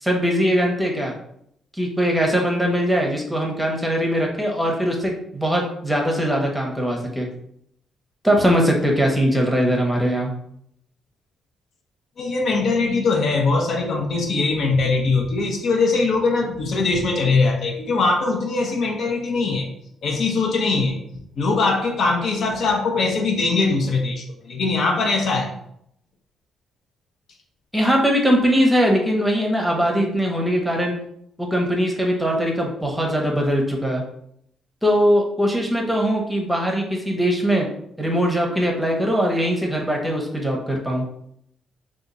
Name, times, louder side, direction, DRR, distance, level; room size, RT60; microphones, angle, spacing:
voice 1, 0.0-1.1 1.7-7.3 8.2-10.3 27.7-31.0 31.4-34.0 34.8-37.7 38.0-41.0, equal, 5° right, 0 dB, 0.8 m, -21 dB
voice 2, 12.2-19.7 20.0-21.0 21.4-25.5, left 3 dB, 60° left, 1 dB, 0.7 m, -21 dB
2.9 x 2.4 x 3.8 m, 0.72 s
cardioid pair, 90°, 0 cm